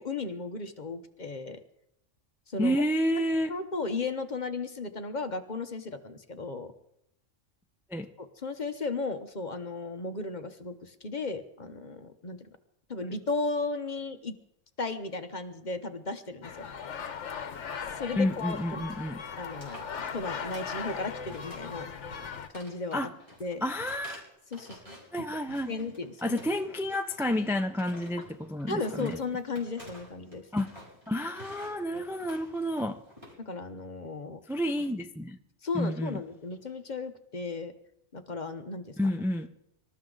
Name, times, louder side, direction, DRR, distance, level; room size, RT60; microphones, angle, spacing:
voice 1, 0.0-1.6 2.5-2.8 3.2-3.3 3.5-6.7 8.2-12.5 12.9-14.4 14.8-16.7 17.9-18.8 19.4-19.8 20.1-21.9 22.5-23.1 23.4-23.6 24.5-25.4 25.7-26.4 28.7-30.4 31.9-32.0 33.4-34.4 35.6-37.7 38.1-38.9, left 3 dB, 40° left, 8 dB, 1.0 m, -35 dB
voice 2, 2.6-3.5 7.9-8.1 18.2-19.2 22.9-23.1 23.6-24.2 25.1-25.7 26.2-29.2 30.5-30.7 31.1-33.0 34.5-35.4 35.7-36.2 39.0-39.5, equal, 5° right, 6 dB, 0.4 m, -30 dB
sound 1, 16.4-22.5, left 6 dB, 70° left, 1.3 m, -38 dB
sound 2, 18.5-18.8 19.0-19.2 19.4-20.9 21.3-21.8 22.1-25.1 25.4-26.7 27.1-33.3, equal, 25° right, 5.7 m, -50 dB
25.0 x 13.5 x 3.9 m, 0.81 s
omnidirectional pair, 1.3 m